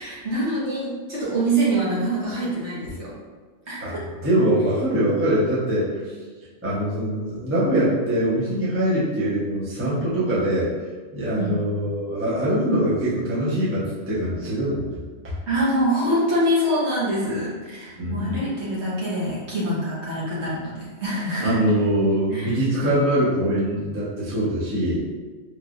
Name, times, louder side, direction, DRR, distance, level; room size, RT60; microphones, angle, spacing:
voice 1, 0.0-3.1 3.7-4.0 5.9-6.0 11.4-11.6 15.5-21.6 22.3-22.5, right 1 dB, 60° right, -8 dB, 1.2 m, -25 dB
voice 2, 3.8-6.1 6.6-10.7 11.1-14.9 15.2-15.3 18.0-18.4 21.4-25.0, right 1 dB, 15° right, -10 dB, 0.6 m, -23 dB
3.3 x 2.7 x 2.4 m, 1.4 s
omnidirectional pair, 1.4 m